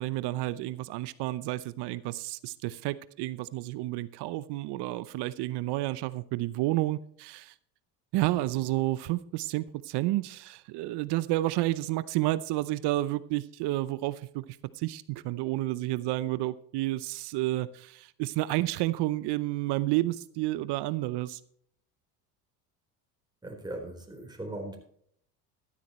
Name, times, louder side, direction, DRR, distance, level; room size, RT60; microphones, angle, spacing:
voice 1, 0.0-7.5 8.1-21.4, right 17 dB, 60° right, 16 dB, 0.8 m, -30 dB
voice 2, 23.4-24.8, right 1 dB, 10° right, 0 dB, 4.2 m, -39 dB
14.0 x 12.5 x 3.1 m, 0.64 s
supercardioid pair, 90°, 46 cm